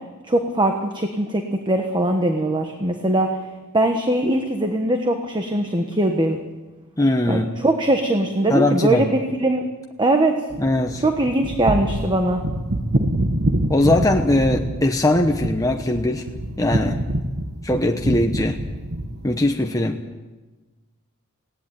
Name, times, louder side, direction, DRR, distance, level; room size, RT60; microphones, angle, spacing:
voice 1, 0.3-3.4 3.7-6.4 7.3-9.7 10.0-10.4 11.0-12.4, right 1 dB, 20° right, 4 dB, 1.3 m, -21 dB
voice 2, 7.0-7.4 8.5-9.0 10.6-11.0 13.7-16.3 16.6-17.0 17.6-18.6 19.2-20.0, left 1 dB, 15° left, 3 dB, 1.0 m, -20 dB
sound 1, 10.5-19.4, right 1 dB, 45° right, 1.4 m, -26 dB
19.0 x 17.0 x 9.0 m, 1.2 s
head